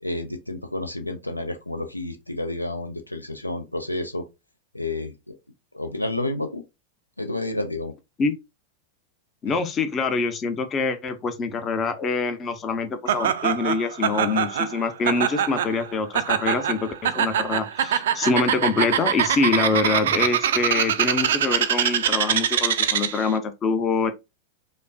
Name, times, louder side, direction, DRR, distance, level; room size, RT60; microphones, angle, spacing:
voice 1, 0.0-4.3 4.7-5.3 5.7-6.6 7.2-7.9, left 2 dB, 85° left, 0.5 m, -30 dB
voice 2, 9.4-24.1, left 4 dB, 25° left, 0.6 m, -25 dB
Laughter, 13.1-23.3, right 9 dB, 60° right, 0.4 m, -24 dB
5.1 x 2.1 x 2.6 m
figure-of-eight pair, 90°, 0 cm